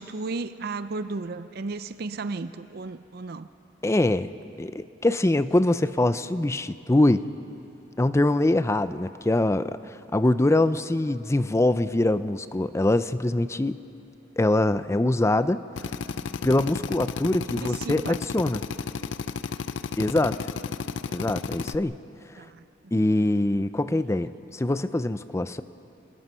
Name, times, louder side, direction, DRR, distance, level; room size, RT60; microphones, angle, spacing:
voice 1, 0.0-3.5 17.5-18.1 22.4-22.9, right 3 dB, 55° right, 12 dB, 0.5 m, -34 dB
voice 2, 3.8-4.3 4.6-7.3 8.0-13.8 14.4-15.6 16.4-18.6 20.0-20.5 21.1-22.0 22.3-22.4 22.9-25.6, left 1 dB, 15° left, 13 dB, 0.5 m, -23 dB
Drill, 15.8-21.8, left 5 dB, 80° left, 0.5 m, -33 dB
28.5 x 19.5 x 5.6 m, 3.0 s
head